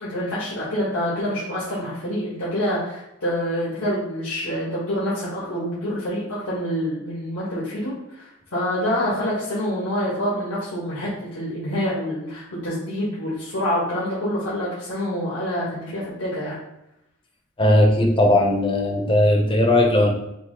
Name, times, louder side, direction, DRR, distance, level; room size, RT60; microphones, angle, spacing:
voice 1, 0.0-16.6, equal, 85° left, -8 dB, 1.3 m, -26 dB
voice 2, 17.6-20.1, left 1 dB, 25° left, 1 dB, 0.7 m, -17 dB
5.8 x 2.0 x 3.7 m, 0.86 s
head